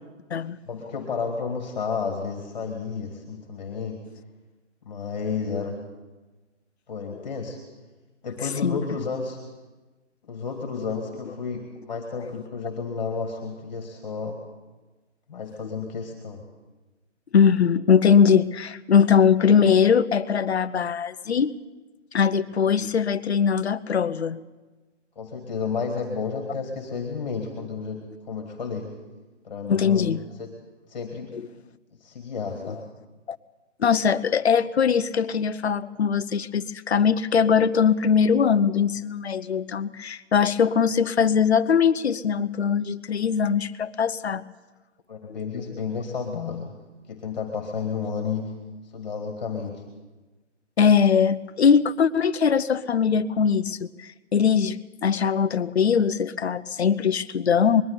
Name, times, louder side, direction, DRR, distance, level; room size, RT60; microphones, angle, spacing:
voice 1, 0.7-4.0 4.8-5.8 6.9-7.6 8.2-9.4 10.2-14.4 15.3-16.4 25.2-28.9 29.4-30.5 30.9-31.3 32.0-32.8 45.1-46.7 47.1-48.5 48.9-49.8, left 5 dB, 35° left, 3 dB, 2.3 m, -31 dB
voice 2, 17.3-21.5 22.1-24.4 29.7-30.2 31.3-31.4 33.8-44.4 45.3-45.4 50.8-57.8, left 7 dB, 60° left, 13 dB, 0.9 m, -21 dB
21.0 x 13.0 x 9.8 m, 1.2 s
hypercardioid pair, 170°, 37 cm